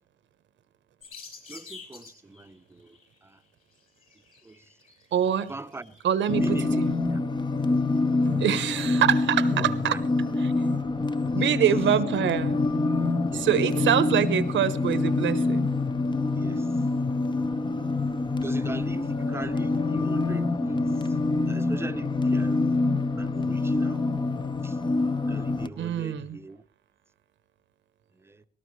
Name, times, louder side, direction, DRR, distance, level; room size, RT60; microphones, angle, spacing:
sound 1, 1.0-2.5 2.9-3.2 3.8-6.9, left 5 dB, 45° left, 5.6 m, -48 dB
voice 1, 1.5-3.4 4.4-4.7 5.5-6.0 6.4-7.2 8.8-9.0 9.5-10.0 11.4-11.6 13.3-13.5 16.3-16.7 18.4-20.8 21.4-22.6 23.2-24.0 24.6-24.8 25.3-26.6 28.2-28.4, right 3 dB, 10° right, 0.8 m, -40 dB
voice 2, 5.1-5.5 6.0-6.9 8.4-10.0 10.4-10.5 11.3-12.6 13.3-15.7 25.8-26.4, right 10 dB, 70° right, 1.0 m, -25 dB
sound 2, 6.3-25.7, left 3 dB, 25° left, 0.8 m, -26 dB
sound 3, 8.2-9.2 9.6-10.8 11.1-11.2 12.2-12.3 13.3-13.4 13.8-14.5, right 6 dB, 40° right, 0.9 m, -44 dB
19.5 x 18.0 x 3.2 m
cardioid pair, 90°, 20 cm